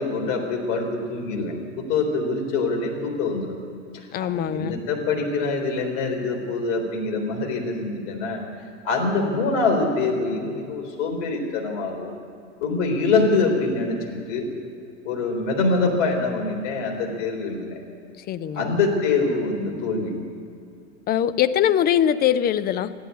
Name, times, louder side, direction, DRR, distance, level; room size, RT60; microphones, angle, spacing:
voice 1, 0.0-3.6 3.9-8.5 8.8-12.1 12.6-14.5 15.0-17.8 18.5-20.1, left 3 dB, 55° left, 1 dB, 3.9 m, -24 dB
voice 2, 4.1-4.8 18.2-18.7 21.1-22.9, left 10 dB, 25° left, 14 dB, 0.5 m, -22 dB
14.0 x 11.0 x 8.3 m, 2.4 s
hypercardioid pair, 100°, 38 cm